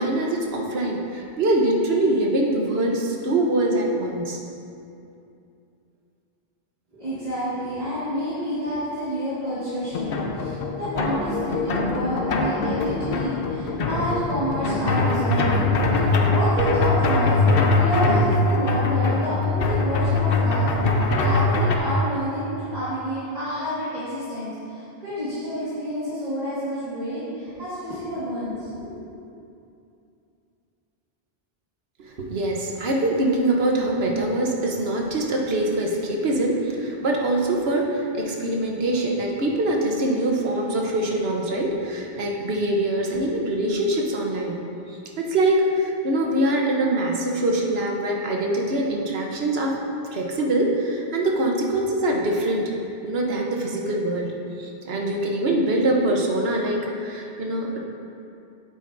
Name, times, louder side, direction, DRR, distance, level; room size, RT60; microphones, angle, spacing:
voice 1, 0.0-4.4 32.0-44.5 44.9-49.8 50.1-52.6 53.0-54.3 54.6-57.8, right 1 dB, 75° right, 0 dB, 1.2 m, -23 dB
voice 2, 6.9-29.0, equal, 40° right, -12 dB, 1.8 m, -29 dB
sound 1, 9.9-21.8, left 3 dB, 65° left, 0.9 m, -22 dB
9.0 x 8.1 x 2.6 m, 2.6 s
omnidirectional pair, 1.0 m